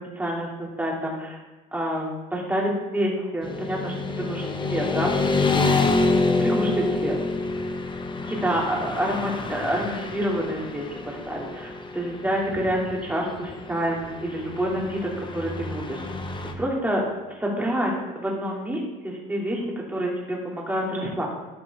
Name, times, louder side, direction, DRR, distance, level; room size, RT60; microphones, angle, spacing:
voice 1, 0.0-1.4 1.7-5.1 5.5-5.7 6.4-7.2 8.3-15.0 15.3-16.0 16.6-17.0 17.4-21.3, equal, 10° right, -3 dB, 2.8 m, -28 dB
Motorcycle / Traffic noise roadway noise, 3.4-16.5, left 3 dB, 25° left, 1.1 m, -27 dB
12.5 x 4.7 x 3.7 m, 1.1 s
supercardioid pair, 80°, 19 cm